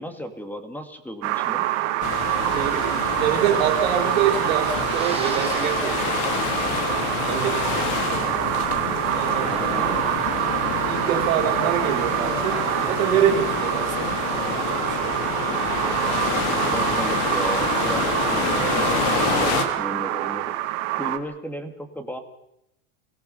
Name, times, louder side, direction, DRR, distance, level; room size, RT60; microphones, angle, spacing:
voice 1, 0.0-1.7 9.4-10.1 16.7-20.6 21.0-22.2, equal, 5° left, 7 dB, 2.4 m, -35 dB
sound 1, 1.2-21.2, right 15 dB, 70° right, 2.1 m, -26 dB
sound 2, 2.0-19.7, left 7 dB, 60° left, 3.1 m, -28 dB
voice 2, 2.5-8.0 9.1-10.0 10.9-15.4 18.5-19.0, right 9 dB, 85° right, 5 dB, 3.6 m, -27 dB
sound 3, 4.8-13.3, right 5 dB, 15° right, 2.5 m, -41 dB
27.5 x 18.5 x 5.7 m, 0.79 s
supercardioid pair, 135°, 40 cm